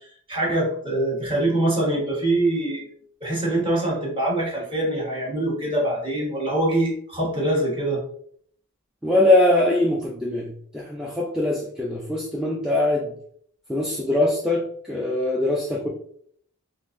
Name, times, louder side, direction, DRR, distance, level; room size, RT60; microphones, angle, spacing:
voice 1, 0.3-2.8 3.2-8.0, right 1 dB, 25° right, -5 dB, 1.2 m, -24 dB
voice 2, 9.0-13.2 13.7-15.9, left 1 dB, 5° right, -4 dB, 0.3 m, -22 dB
3.8 x 2.6 x 2.5 m, 0.63 s
head